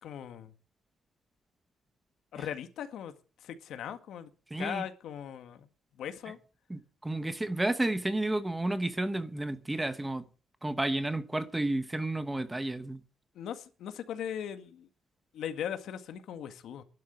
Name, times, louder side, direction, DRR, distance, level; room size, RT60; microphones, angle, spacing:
voice 1, 0.0-0.5 2.3-4.3 4.6-6.4 13.4-14.9 15.3-16.8, left 9 dB, 85° left, 1.8 m, -39 dB
voice 2, 4.5-4.8 6.7-10.2 10.6-13.0, right 2 dB, 10° right, 1.1 m, -31 dB
12.0 x 7.4 x 10.0 m
cardioid pair, 150°, 0 cm